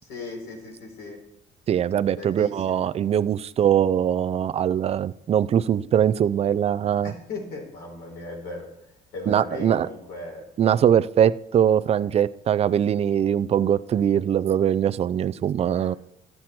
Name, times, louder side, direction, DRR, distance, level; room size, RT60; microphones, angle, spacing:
voice 1, 0.0-1.2 2.1-2.8 7.0-8.7 9.1-10.4 15.8-16.0, left 3 dB, 75° left, 0 dB, 4.5 m, -37 dB
voice 2, 1.7-7.1 9.3-9.9 10.6-15.9, right 9 dB, 40° right, 14 dB, 0.4 m, -22 dB
13.0 x 7.7 x 4.4 m, 0.80 s
cardioid pair, 110°, 17 cm